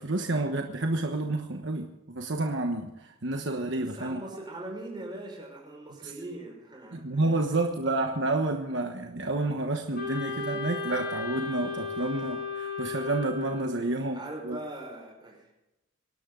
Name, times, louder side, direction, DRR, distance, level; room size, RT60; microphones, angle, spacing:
voice 1, 0.0-4.2 6.0-6.1 6.9-14.6, right 2 dB, 60° right, 4 dB, 1.2 m, -30 dB
voice 2, 3.8-7.2 13.7-13.9 14.1-15.4, right 1 dB, 20° right, 0 dB, 5.3 m, -41 dB
Wind instrument woodwind instrument, 9.9-13.9, left 4 dB, 50° left, 3.5 m, -35 dB
25.0 x 12.0 x 3.9 m, 0.91 s
head